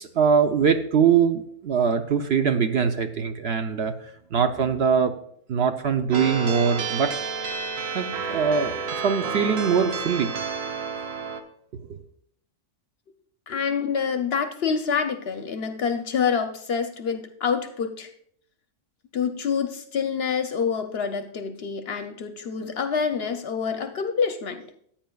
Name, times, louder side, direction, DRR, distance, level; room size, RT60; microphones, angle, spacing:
voice 1, 0.0-5.1 5.5-7.1 7.9-10.3 11.8-12.0, right 6 dB, 60° right, 7 dB, 0.8 m, -22 dB
sound 1, 6.1-11.4, right 5 dB, 80° right, 1.3 m, -30 dB
voice 2, 13.5-18.1 19.1-24.7, left 6 dB, 60° left, 8 dB, 0.8 m, -27 dB
14.5 x 8.7 x 2.3 m, 0.67 s
omnidirectional pair, 1.4 m